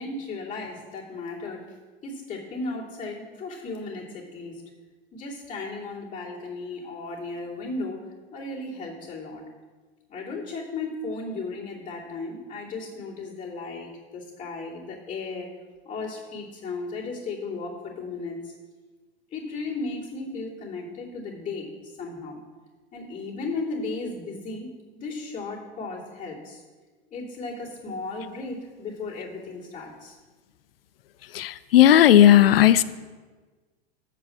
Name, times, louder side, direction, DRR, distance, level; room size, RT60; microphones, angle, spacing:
voice 1, 0.0-1.7 2.0-4.6 5.1-8.0 8.3-9.4 10.1-15.5 15.8-18.5 19.3-22.4 22.9-24.7 25.0-26.6 27.1-30.2, left 3 dB, 25° left, -6 dB, 2.7 m, -35 dB
voice 2, 31.4-32.8, left 11 dB, 65° left, 16 dB, 0.5 m, -15 dB
8.1 x 4.7 x 7.3 m, 1.4 s
figure-of-eight pair, 95°, 31 cm